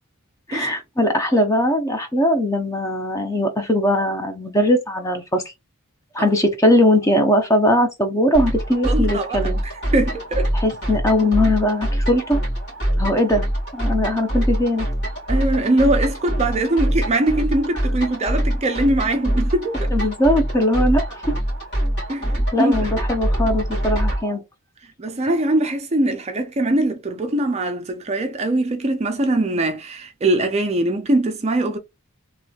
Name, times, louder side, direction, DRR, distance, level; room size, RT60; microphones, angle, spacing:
voice 1, 0.5-5.4 6.1-9.6 10.5-12.4 13.0-13.4 13.7-14.9 19.9-21.2 22.5-24.4, left 1 dB, 15° left, 0.6 m, -20 dB
sound 1, 8.3-24.2, equal, 50° left, 1.8 m, -24 dB
voice 2, 8.8-9.4 9.6-10.5 15.3-19.9 22.1-22.8 25.0-31.8, right 1 dB, 30° right, 0.4 m, -22 dB
3.0 x 3.0 x 2.3 m
head